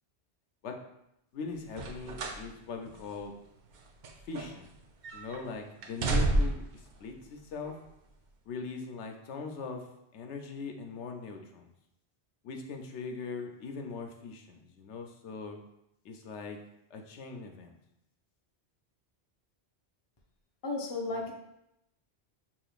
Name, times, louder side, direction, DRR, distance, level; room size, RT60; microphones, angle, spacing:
voice 1, 1.3-3.3 4.3-4.7 5.1-7.7 8.5-9.9 10.1-11.7 12.4-15.6 16.0-16.6 16.9-17.8 21.1-21.2, left 4 dB, 90° left, 4 dB, 0.9 m, -41 dB
sound 1, 1.7-2.5 2.9-3.0 3.7-4.8 5.0-5.4 5.8-6.8 7.6-7.7, right 2 dB, 55° right, 0.5 m, -30 dB
voice 2, 20.6-21.3, left 3 dB, 30° left, 0 dB, 0.5 m, -33 dB
4.9 x 3.0 x 2.4 m, 0.82 s
omnidirectional pair, 1.1 m